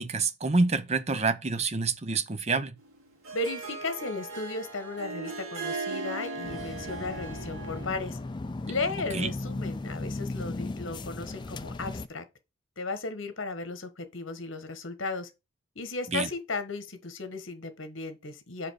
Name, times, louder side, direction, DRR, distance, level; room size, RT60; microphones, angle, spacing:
voice 1, 0.0-2.7 9.1-9.3 16.1-16.3, right 3 dB, 30° right, 0.6 m, -27 dB
Harp, 2.8-8.2, right 3 dB, 85° right, 3.0 m, -38 dB
voice 2, 3.3-8.2 8.7-12.2 12.8-15.3 15.7-18.7, left 3 dB, 65° left, 1.3 m, -35 dB
sound 1, 6.4-12.1, left 2 dB, 20° left, 0.3 m, -36 dB
5.5 x 5.1 x 6.3 m
head